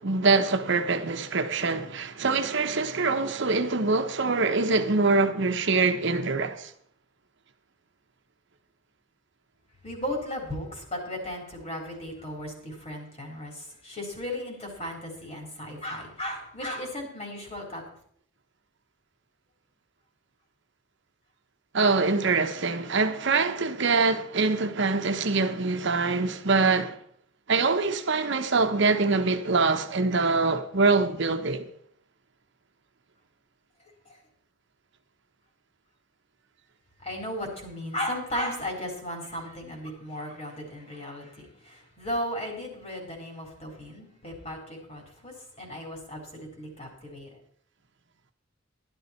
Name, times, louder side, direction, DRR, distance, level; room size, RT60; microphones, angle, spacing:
voice 1, 0.0-6.7 21.7-27.0 27.5-31.7, right 3 dB, 65° right, 0.9 m, -24 dB
voice 2, 9.8-17.8 37.0-47.3, left 1 dB, 35° left, 4.1 m, -35 dB
12.5 x 11.5 x 4.4 m
head